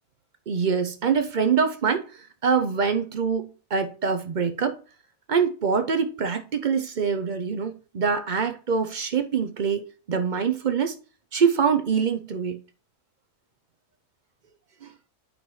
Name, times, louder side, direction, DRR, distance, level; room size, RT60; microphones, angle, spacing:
voice 1, 0.5-4.8 5.3-11.0 11.3-12.6 14.8-14.9, right 6 dB, 55° right, 0.5 m, -24 dB
8.9 x 5.3 x 3.2 m
omnidirectional pair, 1.7 m